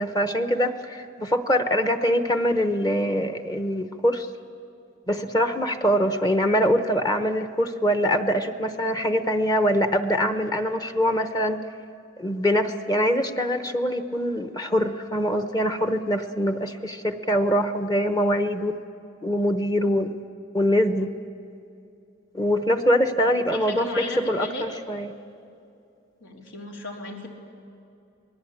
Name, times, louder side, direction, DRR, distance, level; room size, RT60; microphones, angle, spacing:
voice 1, 0.0-4.3 5.1-11.6 12.2-18.8 19.2-20.2 20.5-21.1 22.3-25.1, equal, 20° left, 8 dB, 1.0 m, -23 dB
voice 2, 23.2-24.6 26.2-27.3, left 2 dB, 85° left, 0 dB, 3.8 m, -35 dB
27.0 x 20.5 x 8.7 m, 2.6 s
head